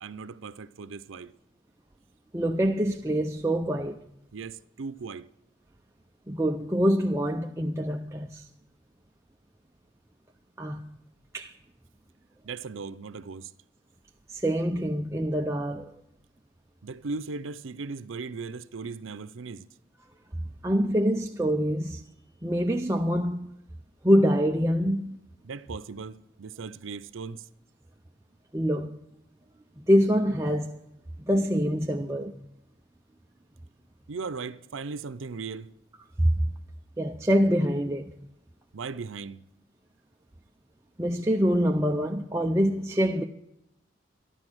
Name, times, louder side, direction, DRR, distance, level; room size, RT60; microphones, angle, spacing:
voice 1, 0.0-1.3 4.3-5.3 12.4-13.5 16.8-19.7 25.4-27.5 34.1-35.7 38.7-39.4, right 4 dB, 90° right, 0.6 m, -37 dB
voice 2, 2.3-4.0 6.3-8.5 10.6-10.8 11.3-11.5 14.3-15.9 20.6-22.0 22.4-23.5 24.0-25.2 28.5-29.0 29.8-30.8 31.3-32.4 36.2-36.5 37.0-38.1 41.0-43.2, equal, 15° right, 0.5 m, -25 dB
14.0 x 12.0 x 6.1 m
head